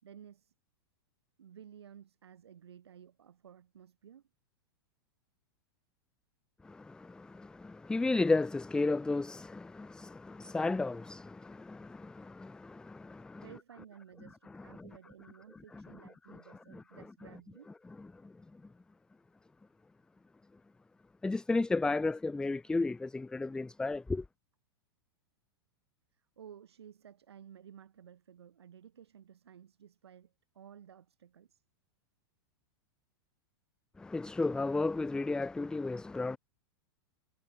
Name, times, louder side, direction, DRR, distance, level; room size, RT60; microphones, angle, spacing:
voice 1, 0.0-0.5 1.4-4.2 13.4-17.7 26.1-31.6, right 9 dB, 85° right, 6.5 m, -55 dB
voice 2, 6.6-13.4 14.5-14.8 15.7-15.8 16.3-16.4 16.7-16.8 18.1-18.3 21.2-24.2 34.0-36.4, left 3 dB, 5° left, 0.4 m, -33 dB
hypercardioid pair, 120°, 13 cm